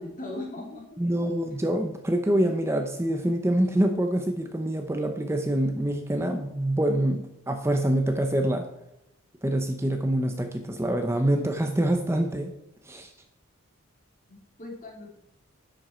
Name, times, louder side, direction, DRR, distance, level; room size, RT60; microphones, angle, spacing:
voice 1, 0.0-0.9 14.3-15.2, left 2 dB, 40° left, 0 dB, 2.9 m, -38 dB
voice 2, 1.0-8.7 9.4-12.5 12.8-13.1, right 1 dB, 10° right, 5 dB, 0.7 m, -25 dB
11.0 x 7.8 x 4.4 m, 0.85 s
head